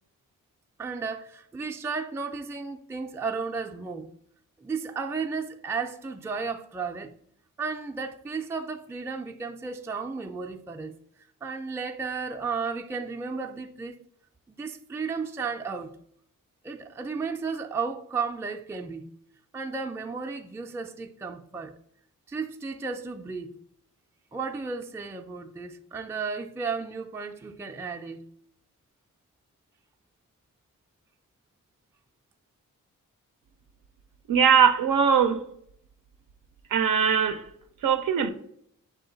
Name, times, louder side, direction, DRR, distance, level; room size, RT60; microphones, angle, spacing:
voice 1, 0.8-4.1 4.6-7.1 7.6-11.0 11.4-14.0 14.5-16.0 16.6-19.1 19.5-21.7 22.3-23.6 24.3-28.2, right 5 dB, 10° right, 0.3 m, -34 dB
voice 2, 34.3-35.5 36.7-37.5 37.8-38.3, right 7 dB, 80° right, 0.5 m, -21 dB
6.1 x 2.2 x 3.8 m
cardioid pair, 50°, 33 cm